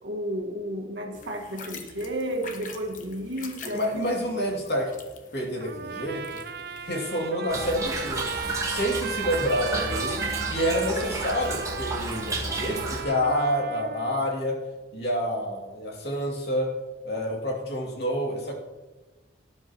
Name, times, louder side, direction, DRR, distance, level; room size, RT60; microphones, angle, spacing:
voice 1, 0.0-4.1, right 1 dB, 80° right, 1 dB, 1.7 m, -32 dB
sound 1, 1.1-7.3, left 4 dB, 45° left, 1.1 m, -45 dB
voice 2, 3.7-4.9 5.3-6.2 6.8-8.3 8.6-14.6 14.9-16.7 17.0-18.5, equal, 60° left, -1 dB, 2.5 m, -28 dB
Trumpet, 5.6-14.2, right 6 dB, 55° right, 0.5 m, -36 dB
Toilet flush / Trickle dribble, 7.5-13.0, right 2 dB, 15° right, 1.5 m, -32 dB
18.0 x 10.5 x 3.0 m, 1.2 s
head